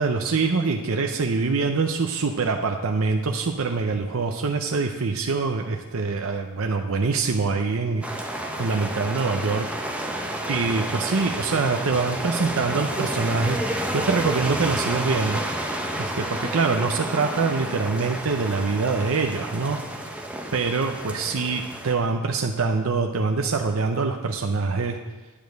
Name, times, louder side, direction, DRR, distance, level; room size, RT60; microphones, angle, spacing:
voice 1, 0.0-9.7 10.5-15.4 16.0-19.8 20.5-25.0, right 4 dB, 65° right, 3 dB, 0.6 m, -24 dB
sound 1, 8.0-21.9, right 1 dB, 5° right, 1.0 m, -30 dB
10.0 x 5.2 x 7.7 m, 1.3 s
head